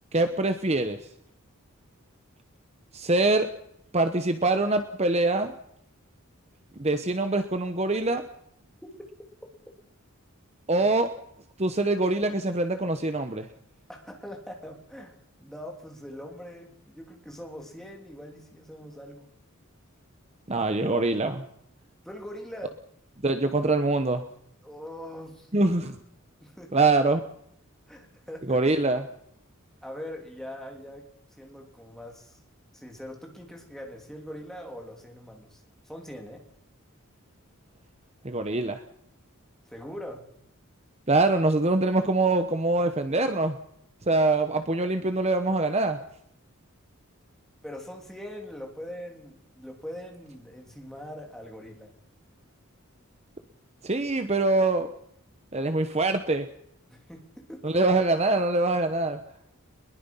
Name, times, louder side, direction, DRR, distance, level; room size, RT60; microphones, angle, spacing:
voice 1, 0.1-1.0 2.9-3.5 3.9-5.5 6.8-8.2 10.7-11.1 11.6-13.5 20.5-21.4 23.2-24.2 25.5-26.0 26.7-27.2 28.5-29.1 38.2-38.8 41.1-43.6 44.1-46.0 53.8-54.9 55.5-56.5 57.6-59.2, right 2 dB, 30° right, 8 dB, 1.1 m, -24 dB
voice 2, 13.9-19.3 22.0-22.7 24.6-25.5 26.4-26.9 27.9-28.6 29.8-31.1 31.4-32.4 32.7-36.4 39.7-40.2 47.6-51.9 56.9-57.8, equal, ahead, 1 dB, 3.5 m, -42 dB
22.5 x 21.5 x 5.7 m, 0.72 s
head